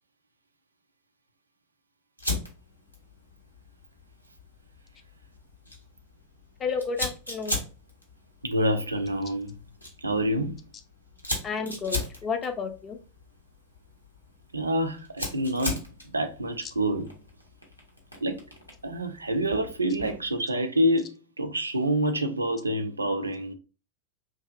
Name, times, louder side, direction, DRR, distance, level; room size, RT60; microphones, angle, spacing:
Fire, 2.2-20.4, left 2 dB, 90° left, 0.6 m, -39 dB
voice 1, 6.6-7.6 11.4-13.0 16.6-16.7, left 5 dB, 25° left, 0.4 m, -31 dB
voice 2, 8.4-9.5 10.0-10.6 14.5-17.2 18.2-18.4 18.8-23.5, right 1 dB, 80° right, 0.3 m, -27 dB
2.6 x 2.2 x 2.4 m
figure-of-eight pair, 90°, 0 cm